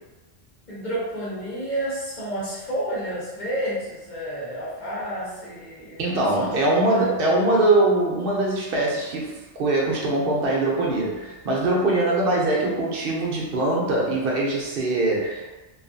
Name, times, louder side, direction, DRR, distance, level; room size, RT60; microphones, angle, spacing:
voice 1, 0.7-6.1 6.3-7.1, right 1 dB, 45° left, -9 dB, 0.8 m, -30 dB
voice 2, 6.0-15.6, right 2 dB, 60° right, -3 dB, 0.8 m, -22 dB
2.6 x 2.4 x 2.5 m, 1.1 s
omnidirectional pair, 1.2 m